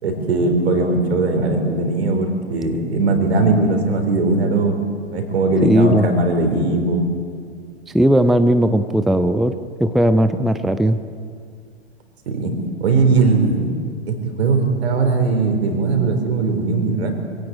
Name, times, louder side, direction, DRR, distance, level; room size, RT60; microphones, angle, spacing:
voice 1, 0.0-4.7 5.1-7.1 12.3-12.5 12.8-13.7 14.1-17.1, right 3 dB, 70° right, 5 dB, 4.4 m, -19 dB
voice 2, 5.6-6.1 7.9-9.5 9.8-11.0, right 1 dB, ahead, 11 dB, 0.5 m, -16 dB
23.5 x 16.0 x 8.6 m, 2.2 s
figure-of-eight pair, 100°, 34 cm